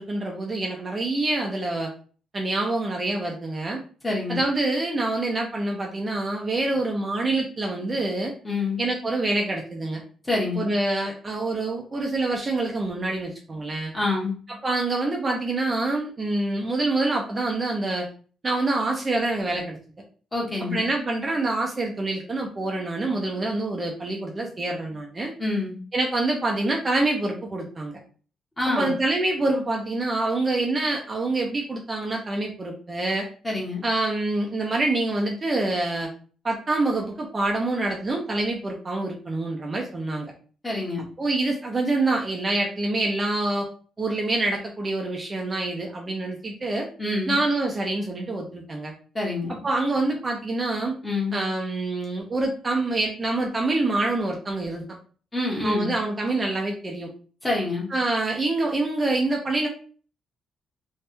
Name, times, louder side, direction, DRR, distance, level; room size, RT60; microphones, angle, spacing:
voice 1, 0.0-1.9 2.3-3.8 4.3-8.3 8.8-10.0 10.6-13.9 14.5-18.1 18.4-19.8 20.6-25.3 25.9-28.0 28.8-33.3 33.8-36.1 36.4-40.3 41.2-43.7 44.0-46.9 47.3-48.9 49.6-50.9 51.3-54.8 55.6-57.1 57.9-59.7, right 2 dB, 25° right, 0 dB, 0.7 m, -26 dB
voice 2, 4.0-4.4 8.4-8.8 10.2-10.6 13.9-14.4 20.3-20.8 25.4-25.8 28.6-28.9 33.4-33.8 40.6-41.0 47.0-47.4 49.1-49.5 51.0-51.4 55.3-55.9 57.4-57.9, left 2 dB, 15° left, -3 dB, 1.5 m, -26 dB
3.5 x 3.2 x 2.8 m, 0.40 s
cardioid pair, 120°, 0 cm